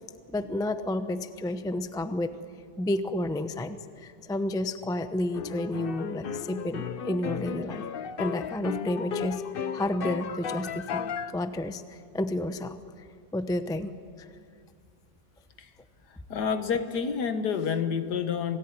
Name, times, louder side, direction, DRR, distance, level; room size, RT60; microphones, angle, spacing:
voice 1, 0.3-2.3 2.8-7.8 8.2-9.4 9.7-12.8 13.3-14.3, left 1 dB, 5° left, 10 dB, 0.4 m, -31 dB
sound 1, 5.3-11.3, left 7 dB, 55° left, 0.6 m, -34 dB
voice 2, 16.1-18.6, left 6 dB, 70° left, 9 dB, 1.9 m, -29 dB
27.0 x 18.5 x 9.7 m, 2.2 s
omnidirectional pair, 1.8 m